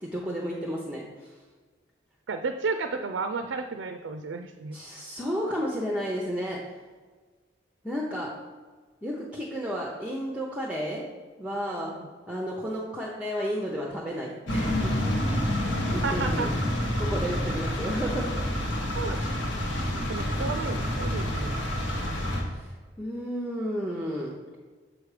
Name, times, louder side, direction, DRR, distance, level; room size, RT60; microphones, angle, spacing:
voice 1, 0.0-1.4 4.7-6.6 7.8-8.3 9.0-11.0 11.4-11.9 12.3-15.4 15.9-16.5 17.0-18.3 22.3-24.4, equal, 5° right, -3 dB, 0.6 m, -32 dB
voice 2, 2.3-4.8 11.7-12.1 16.0-16.5 18.9-19.2 19.5-19.6 20.0-21.6, right 4 dB, 80° right, 7 dB, 0.4 m, -33 dB
sound 1, 14.5-22.4, left 1 dB, 75° left, 1.4 m, -28 dB
7.3 x 4.8 x 4.9 m, 1.4 s
head